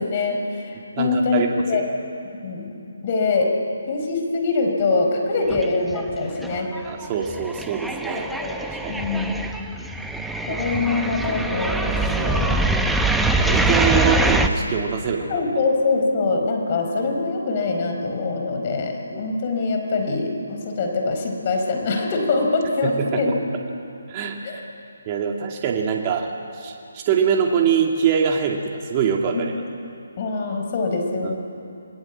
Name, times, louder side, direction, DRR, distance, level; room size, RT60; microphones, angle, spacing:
voice 1, 0.0-1.8 2.4-2.7 3.0-3.5 3.9-6.7 8.1-8.6 8.9-9.3 10.5-12.6 15.3-23.3 24.4-24.6 30.2-31.4, left 3 dB, 35° left, 2 dB, 4.8 m, -24 dB
voice 2, 0.7-1.8 6.5-8.3 8.7-9.1 10.5-10.6 12.1-12.4 13.4-15.4 19.1-19.3 22.8-23.2 24.1-24.4 25.1-29.5 31.2-31.3, right 7 dB, 30° right, 1 dB, 2.1 m, -24 dB
sound 1, 5.5-6.2 6.4-14.5, right 2 dB, ahead, 1.1 m, -23 dB
28.5 x 21.0 x 8.5 m, 2.8 s
figure-of-eight pair, 150°, 0 cm